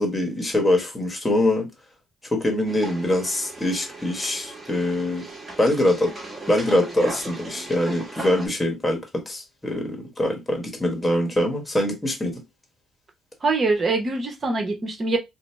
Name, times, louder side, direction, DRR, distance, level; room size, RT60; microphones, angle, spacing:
voice 1, 0.0-1.7 2.3-5.2 5.6-6.1 6.5-12.3, left 1 dB, 15° left, 1.1 m, -23 dB
sound 1, 2.7-8.5, right 2 dB, 25° right, 1.4 m, -37 dB
voice 2, 13.4-15.2, right 3 dB, 40° right, 0.9 m, -23 dB
2.7 x 2.0 x 3.3 m
cardioid pair, 90°, 0 cm